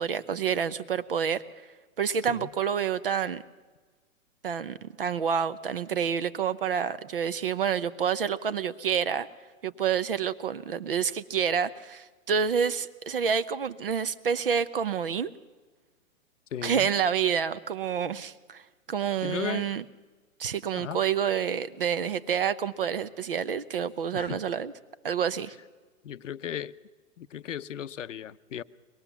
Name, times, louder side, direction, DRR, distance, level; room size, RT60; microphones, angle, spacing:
voice 1, 0.0-1.4 2.0-3.4 4.4-9.3 9.6-15.3 16.6-18.6 18.9-19.8 20.4-24.7 25.0-25.6, right 7 dB, 40° right, 15 dB, 0.7 m, -28 dB
voice 2, 16.5-16.9 19.2-19.7 20.7-21.0 24.1-24.4 26.0-26.7 27.2-28.6, left 10 dB, 60° left, 15 dB, 0.7 m, -36 dB
23.0 x 20.0 x 7.1 m, 1.3 s
hypercardioid pair, 175°, 41 cm